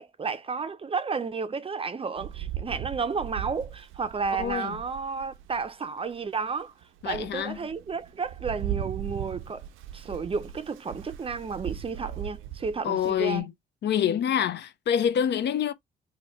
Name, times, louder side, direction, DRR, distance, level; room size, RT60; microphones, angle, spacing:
voice 1, 0.0-6.7 7.0-9.6 9.9-13.5, right 5 dB, 30° right, 0.5 m, -32 dB
Rain, 2.2-5.7 6.2-6.3 6.8-13.4, right 11 dB, 85° right, 0.5 m, -38 dB
voice 2, 4.4-4.8 7.0-7.6 12.8-13.5 13.8-15.7, left 9 dB, 60° left, 0.6 m, -26 dB
3.1 x 2.3 x 4.1 m
cardioid pair, 90°, 20 cm